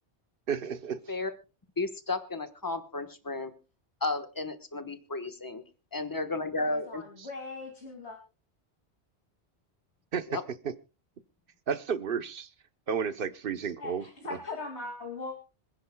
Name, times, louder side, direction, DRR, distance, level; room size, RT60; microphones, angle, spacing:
voice 1, 0.5-1.1 10.1-10.4 10.6-10.7 11.7-12.5 12.9-14.1, right 7 dB, 55° right, 12 dB, 1.0 m, -32 dB
voice 2, 1.8-3.5 4.0-5.6 5.9-7.0 10.3-10.4, left 3 dB, 20° left, 8 dB, 1.2 m, -33 dB
voice 3, 6.6-8.2 13.8-15.4, left 3 dB, 75° left, 2 dB, 2.7 m, -40 dB
26.0 x 10.0 x 2.3 m, 0.31 s
omnidirectional pair, 1.1 m